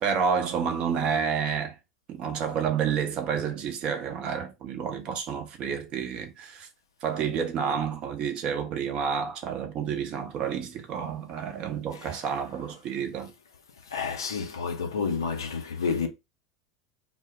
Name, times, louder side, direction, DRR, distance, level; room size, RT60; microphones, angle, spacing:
voice 1, 0.0-1.8 2.1-6.7 7.0-13.3, right 7 dB, 40° right, 0.6 m, -29 dB
voice 2, 13.8-16.1, left 5 dB, 70° left, 0.5 m, -30 dB
2.0 x 2.0 x 3.5 m
figure-of-eight pair, 75°, 2 cm